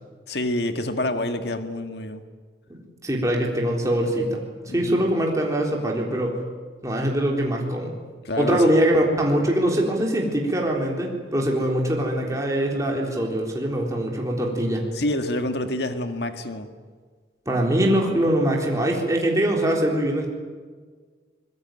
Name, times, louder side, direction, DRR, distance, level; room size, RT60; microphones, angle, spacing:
voice 1, 0.3-2.2 4.7-5.0 8.2-8.7 14.9-16.7, left 1 dB, 60° left, 7 dB, 1.8 m, -27 dB
voice 2, 2.7-4.5 4.7-6.4 6.8-7.9 8.4-14.9 17.5-20.3, right 1 dB, 20° right, -1 dB, 3.8 m, -23 dB
24.5 x 21.5 x 9.2 m, 1.5 s
head